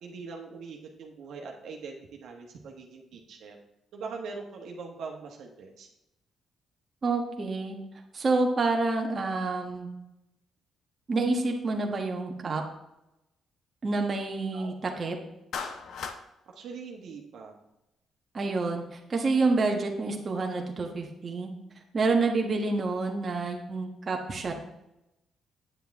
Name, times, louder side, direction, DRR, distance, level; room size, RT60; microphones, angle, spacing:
voice 1, 0.0-3.6 3.9-5.9 14.5-14.7 16.5-17.6, right 4 dB, 75° right, 1 dB, 1.3 m, -42 dB
voice 2, 7.0-7.8 8.1-9.9 11.1-12.6 13.8-15.2 18.3-21.5 21.9-24.5, right 3 dB, 35° right, 1 dB, 1.2 m, -28 dB
Clapping, 15.5-16.2, left 5 dB, 70° left, 0.8 m, -35 dB
9.0 x 7.2 x 3.5 m, 0.90 s
cardioid pair, 90°, 0 cm